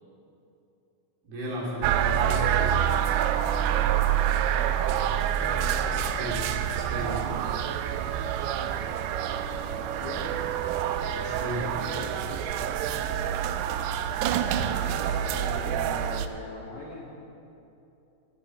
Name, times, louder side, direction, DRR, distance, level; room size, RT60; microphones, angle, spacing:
voice 1, 1.2-2.9 5.8-7.4 11.1-11.7, equal, 55° right, -4 dB, 4.2 m, -35 dB
sound 1, 1.8-16.3, right 10 dB, 90° right, 2.4 m, -27 dB
voice 2, 4.4-4.9 5.4-6.1 9.5-10.4 14.6-14.9 15.3-17.1, left 3 dB, 70° left, -3 dB, 1.9 m, -42 dB
21.0 x 10.5 x 4.6 m, 2.9 s
omnidirectional pair, 5.3 m